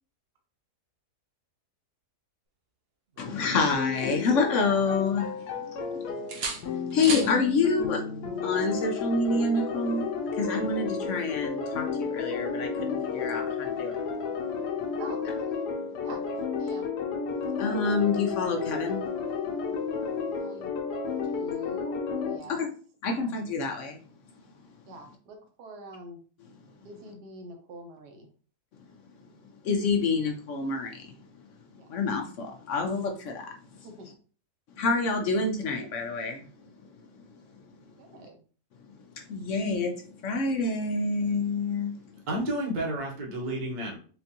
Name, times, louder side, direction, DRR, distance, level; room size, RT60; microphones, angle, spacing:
voice 1, 3.2-5.3 5.7-8.0 8.4-10.1 10.3-13.9 17.6-19.0 22.5-22.7 23.0-24.0 29.6-31.2 31.9-33.5 34.8-36.5 39.3-39.9 40.2-41.9, left 3 dB, 65° left, 2 dB, 0.8 m, -27 dB
sound 1, 3.2-4.7 5.1-5.9 6.3-7.4 9.2-9.4, right 5 dB, 65° right, 0.6 m, -38 dB
sound 2, 3.7-22.4, left 6 dB, 80° left, 1.2 m, -32 dB
voice 2, 5.5-6.0 15.0-15.3 16.0-16.2 16.6-16.9 20.4-20.7 21.2-22.7 23.1-23.4 24.9-26.2 26.8-28.3 31.8-31.9 33.8-34.1 38.0-38.4, right 2 dB, 80° right, 3 dB, 1.3 m, -45 dB
voice 3, 42.3-44.0, right 1 dB, 35° right, -1 dB, 0.9 m, -31 dB
4.4 x 2.4 x 2.8 m, 0.40 s
omnidirectional pair, 1.7 m